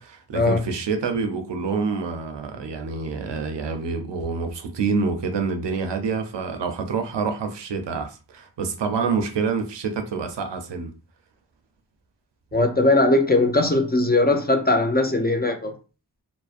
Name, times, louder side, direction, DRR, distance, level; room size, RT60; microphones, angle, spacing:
voice 1, 0.0-10.9, right 5 dB, 85° right, 0.5 m, -27 dB
voice 2, 12.5-15.7, left 2 dB, 25° left, 0.4 m, -19 dB
2.5 x 2.0 x 2.4 m
wide cardioid pair, 40°, 41 cm